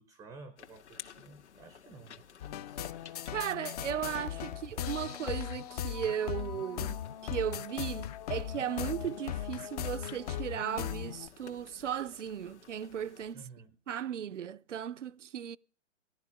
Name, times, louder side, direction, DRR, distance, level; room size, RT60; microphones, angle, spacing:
voice 1, 0.0-2.9 4.7-4.8 13.3-13.7, right 4 dB, 10° right, 0.6 m, -53 dB
sound 1, 0.6-13.3, left 8 dB, 65° left, 1.9 m, -54 dB
sound 2, 2.4-11.3, left 10 dB, 30° left, 0.6 m, -38 dB
voice 2, 3.3-13.4 13.9-15.6, right 9 dB, 75° right, 0.6 m, -36 dB
16.5 x 11.5 x 5.7 m
figure-of-eight pair, 125°, 37 cm